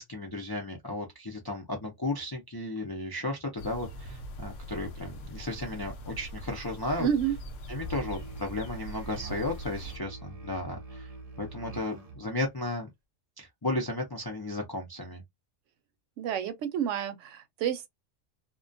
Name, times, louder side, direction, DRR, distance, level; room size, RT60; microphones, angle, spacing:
voice 1, 0.0-7.1 7.7-11.1 11.4-12.9 13.4-15.2, left 2 dB, 35° left, 0.3 m, -34 dB
sound 1, 3.6-10.0, equal, 75° left, 0.9 m, -42 dB
voice 2, 7.0-7.4 16.2-17.9, right 9 dB, 75° right, 0.9 m, -29 dB
Musical instrument, 7.7-12.2, right 3 dB, 45° right, 0.5 m, -44 dB
2.3 x 2.2 x 2.5 m
omnidirectional pair, 1.3 m